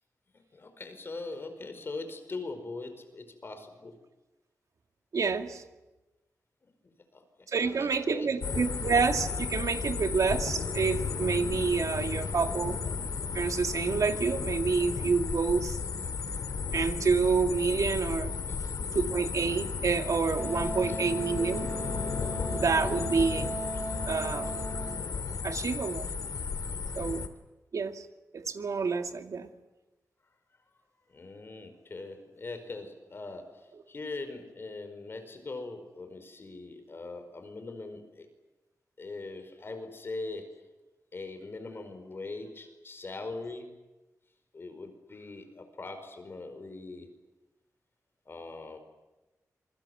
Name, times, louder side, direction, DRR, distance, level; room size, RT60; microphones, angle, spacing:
voice 1, 0.3-4.0 7.1-7.2 7.6-8.3 18.5-18.7 20.9-21.0 23.7-23.8 31.1-38.3 39.0-40.6 41.1-43.7 44.5-47.1 48.3-48.8, left 3 dB, 40° left, 8 dB, 4.9 m, -41 dB
voice 2, 5.1-5.6 7.5-12.8 13.3-15.8 16.7-18.4 18.9-21.7 22.5-23.6 24.1-24.5 25.4-26.1 27.0-27.2 27.7-28.1 28.3-29.5, right 5 dB, 65° right, 6 dB, 2.3 m, -28 dB
sound 1, 8.4-27.3, left 5 dB, 70° left, 2.2 m, -34 dB
Wind instrument woodwind instrument, 20.4-25.1, right 1 dB, 35° right, 4.0 m, -37 dB
27.5 x 23.5 x 8.0 m, 1.1 s
wide cardioid pair, 145°, 6 cm